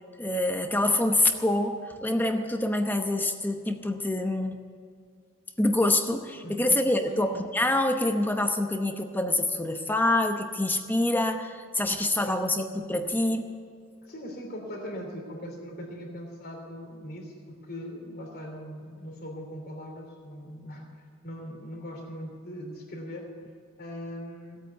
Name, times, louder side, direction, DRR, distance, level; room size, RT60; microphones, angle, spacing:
voice 1, 0.2-4.6 5.6-13.6, left 1 dB, 10° left, 6 dB, 0.9 m, -26 dB
voice 2, 6.4-6.8 7.1-7.2 12.2-12.4 14.0-23.3 23.8-24.6, equal, 45° left, 1 dB, 3.0 m, -40 dB
17.5 x 8.7 x 8.2 m, 2.2 s
head